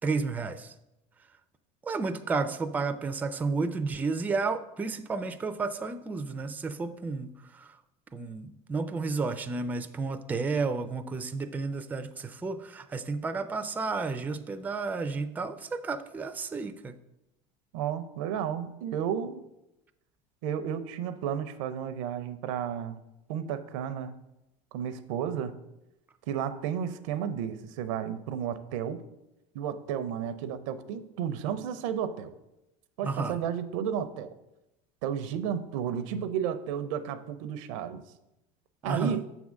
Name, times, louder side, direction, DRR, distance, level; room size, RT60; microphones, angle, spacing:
voice 1, 0.0-0.7 1.8-7.7 8.1-17.0 33.0-33.4 38.8-39.2, right 4 dB, 10° right, 10 dB, 0.3 m, -32 dB
voice 2, 17.7-19.4 20.4-23.0 23.3-24.1 24.7-25.5 26.3-29.0 29.5-32.3 33.0-34.3 35.0-38.0 38.8-39.3, right 8 dB, 85° right, 12 dB, 0.6 m, -32 dB
6.8 x 3.6 x 6.2 m, 0.92 s
supercardioid pair, 120°, 16 cm